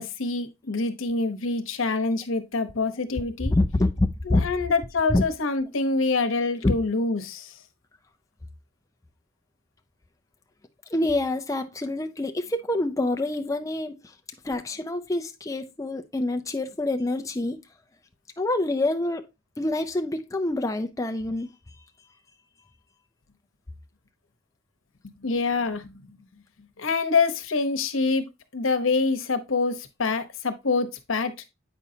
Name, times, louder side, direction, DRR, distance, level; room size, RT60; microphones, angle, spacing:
voice 1, 0.0-3.5 4.2-7.5 25.2-25.9 26.8-28.3 28.5-31.4, left 3 dB, 85° left, 0.9 m, -26 dB
voice 2, 3.5-4.4 5.1-5.2 6.6-6.7 10.9-14.0 14.4-17.6 18.4-19.3 19.6-21.5, left 2 dB, 15° left, 0.4 m, -26 dB
8.2 x 5.3 x 2.7 m
head